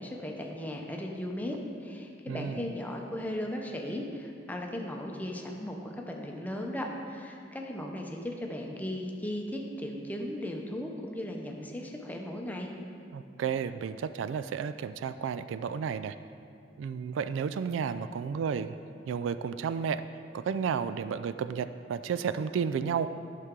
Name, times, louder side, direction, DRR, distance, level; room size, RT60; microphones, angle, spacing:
voice 1, 0.0-12.7, left 1 dB, 10° left, 1 dB, 0.7 m, -37 dB
voice 2, 2.3-2.7 13.1-16.1 16.8-18.8 19.1-20.0 20.3-23.1, right 6 dB, 85° right, 13 dB, 0.3 m, -32 dB
11.0 x 5.8 x 3.7 m, 2.5 s
head